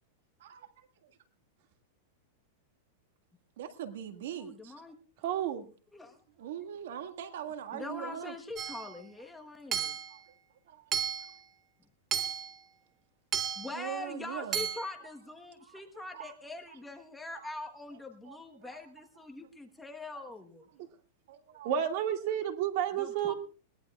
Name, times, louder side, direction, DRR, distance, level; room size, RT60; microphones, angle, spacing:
voice 1, 0.4-1.2 3.6-4.7 6.4-8.3 9.4-9.5 10.1-10.3 10.7-11.4 13.7-14.7 15.0-15.1 15.6-16.3 16.7-16.8 17.3-17.5 18.2-18.8 20.1-20.3 20.7-20.8 21.3-21.8, right 9 dB, 75° right, 9 dB, 1.7 m, -43 dB
voice 2, 4.3-4.9 5.9-6.2 7.7-9.9 13.6-20.7 23.0-23.3, left 2 dB, 5° left, 2 dB, 1.2 m, -43 dB
voice 3, 5.2-5.7 21.6-23.3, right 9 dB, 50° right, 6 dB, 2.1 m, -30 dB
Hammer / Chink clink, 8.6-8.9 9.7-10.2 10.9-11.4 12.1-12.5 13.3-13.8 14.5-14.9, right 8 dB, 20° right, 0.8 m, -33 dB
21.0 x 18.5 x 2.4 m, 0.37 s
supercardioid pair, 160°, 0 cm